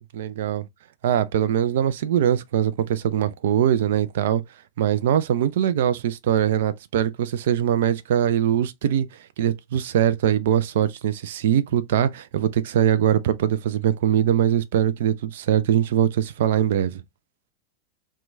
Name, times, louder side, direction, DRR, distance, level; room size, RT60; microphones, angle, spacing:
voice 1, 0.1-0.6 1.0-4.4 4.8-9.1 9.4-17.0, right 10 dB, 55° right, 0.4 m, -22 dB
2.9 x 2.2 x 3.1 m
figure-of-eight pair, 90°, 0 cm